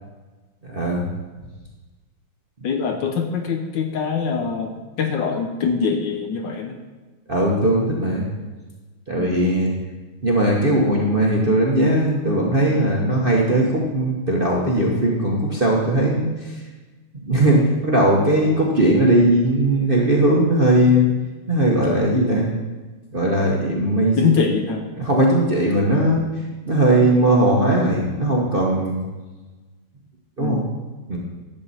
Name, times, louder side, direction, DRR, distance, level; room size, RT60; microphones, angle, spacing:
voice 1, 0.6-1.1 7.3-8.3 9.1-9.7 10.2-16.5 17.3-21.1 21.5-22.5 23.1-24.4 25.0-26.2 26.6-29.0 30.4-30.6 31.1-31.2, right 1 dB, 35° right, -3 dB, 0.9 m, -19 dB
voice 2, 2.6-6.8 9.2-9.3 22.6-22.7 24.2-24.8 30.4-30.7, left 6 dB, 65° left, 5 dB, 1.2 m, -23 dB
12.0 x 7.5 x 4.1 m, 1.2 s
omnidirectional pair, 2.4 m